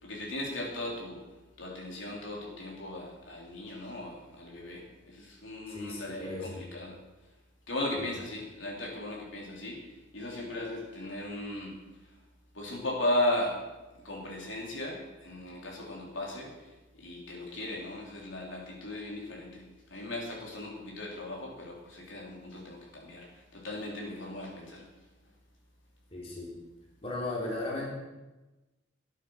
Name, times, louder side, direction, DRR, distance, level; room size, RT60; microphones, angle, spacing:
voice 1, 0.0-1.2 1.6-6.9 7.7-9.8 10.1-11.7 12.5-13.6 14.0-16.5 17.0-19.6 19.9-23.3 23.5-24.8, left 1 dB, 70° left, -2 dB, 3.4 m, -36 dB
voice 2, 5.7-6.6 8.0-8.1 26.1-26.5 27.0-27.9, left 2 dB, 30° left, -4 dB, 3.1 m, -36 dB
12.5 x 9.1 x 6.4 m, 1.1 s
head